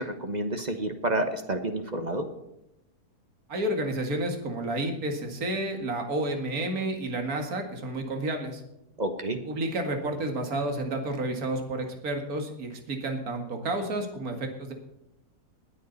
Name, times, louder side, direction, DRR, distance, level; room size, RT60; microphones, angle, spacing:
voice 1, 0.0-2.2 9.0-9.4, right 1 dB, 30° right, 7 dB, 1.2 m, -29 dB
voice 2, 3.5-8.6 9.4-14.7, right 1 dB, 60° right, 4 dB, 2.4 m, -30 dB
20.5 x 8.5 x 4.0 m, 0.86 s
omnidirectional pair, 1.7 m